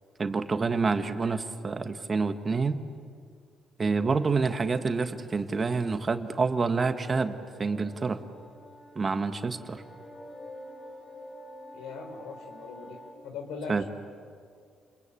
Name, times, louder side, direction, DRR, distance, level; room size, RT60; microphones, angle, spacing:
voice 1, 0.2-2.8 3.8-8.2 8.9-9.8 13.7-13.8, right 4 dB, 35° right, 8 dB, 1.6 m, -28 dB
sound 1, 6.9-13.1, left 1 dB, 35° left, 4.7 m, -47 dB
voice 2, 11.7-13.0 13.2-13.8, left 5 dB, 90° left, 5 dB, 4.0 m, -40 dB
30.0 x 22.0 x 8.6 m, 2.2 s
cardioid pair, 90°, 0 cm